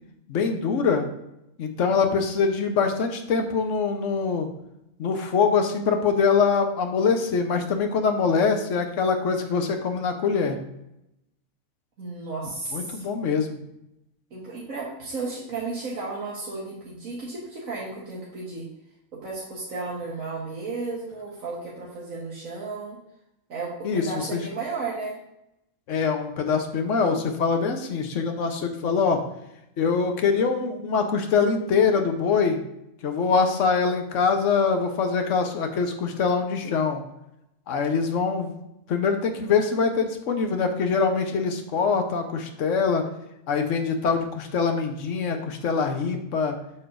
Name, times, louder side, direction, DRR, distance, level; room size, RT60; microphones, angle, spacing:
voice 1, 0.3-1.1 1.6-4.5 5.0-10.6 12.7-13.6 23.8-24.0 24.3-24.4 25.9-29.2 29.8-32.6 33.0-37.0 37.7-38.6 38.9-43.0 43.5-46.6, left 5 dB, 70° left, 5 dB, 1.2 m, -24 dB
voice 2, 12.0-13.0 14.3-18.7 19.1-23.0 23.5-25.1, right 3 dB, 90° right, -6 dB, 1.8 m, -33 dB
8.3 x 6.6 x 2.6 m, 0.85 s
omnidirectional pair, 1.4 m